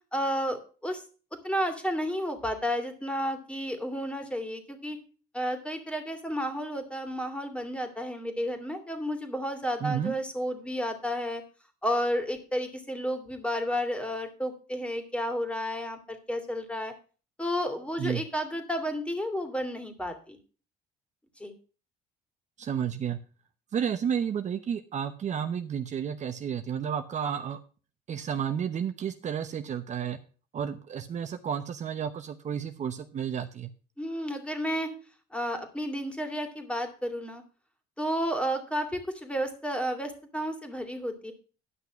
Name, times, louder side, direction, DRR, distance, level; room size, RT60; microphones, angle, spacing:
voice 1, 0.1-1.0 1.4-5.0 5.3-11.4 11.8-16.9 17.4-20.4 21.4-21.5 34.0-34.9 35.3-37.4 38.0-41.3, equal, 5° left, 6 dB, 2.4 m, -32 dB
voice 2, 9.8-10.1 18.0-18.2 22.6-23.2 23.7-27.6 28.1-30.2 30.5-33.7, right 8 dB, 45° right, 8 dB, 0.8 m, -31 dB
11.0 x 5.9 x 6.2 m, 0.38 s
cardioid pair, 110°, 17 cm